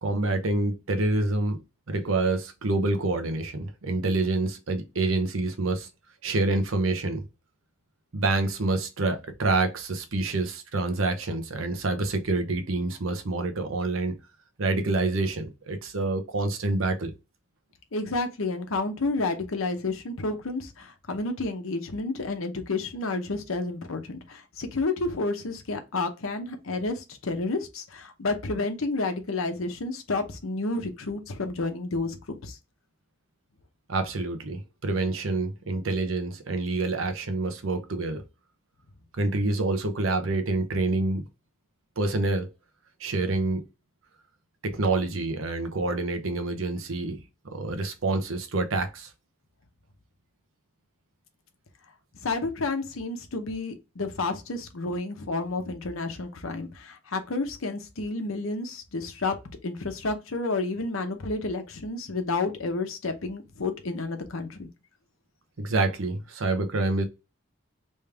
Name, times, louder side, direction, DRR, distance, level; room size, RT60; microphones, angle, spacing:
voice 1, 0.0-1.6 1.9-5.9 6.2-7.2 8.1-14.2 14.6-17.1 33.9-38.2 39.1-41.2 42.0-42.5 43.0-43.6 44.6-47.2 47.4-49.1 65.6-67.1, right 2 dB, 80° right, 0.8 m, -27 dB
voice 2, 17.9-32.6 52.2-59.4 59.6-64.7, left 3 dB, 90° left, 0.8 m, -30 dB
3.4 x 3.1 x 3.3 m
head